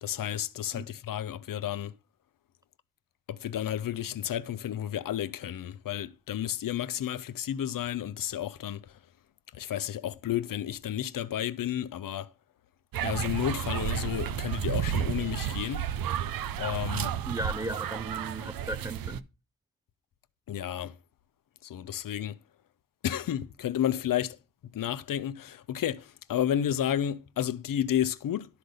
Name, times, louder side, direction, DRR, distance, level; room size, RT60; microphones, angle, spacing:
voice 1, 0.0-1.9 3.3-8.8 9.5-12.3 13.0-15.8 16.6-17.1 20.5-20.9 21.6-22.3 23.0-24.4 24.7-28.5, left 11 dB, 75° left, 0.7 m, -31 dB
sound 1, 12.9-19.2, right 10 dB, 85° right, 0.6 m, -32 dB
voice 2, 17.3-19.2, right 1 dB, 10° right, 0.5 m, -36 dB
11.5 x 3.9 x 6.5 m
cardioid pair, 70°, 34 cm